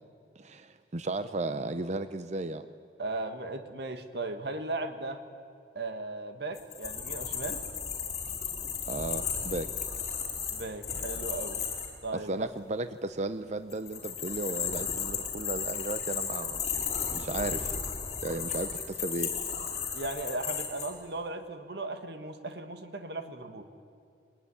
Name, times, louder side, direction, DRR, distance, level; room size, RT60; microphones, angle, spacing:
voice 1, 0.4-2.7 8.9-9.7 12.1-16.6 17.1-17.7 18.2-19.3, right 2 dB, 40° right, 11 dB, 0.7 m, -35 dB
voice 2, 3.0-5.2 5.7-7.6 10.5-11.6 12.0-12.5 19.9-23.7, right 2 dB, 65° right, 7 dB, 1.6 m, -37 dB
sound 1, 6.5-11.9 13.7-20.9, left 7 dB, 40° left, 5.3 m, -34 dB
22.5 x 19.5 x 10.0 m, 2.4 s
head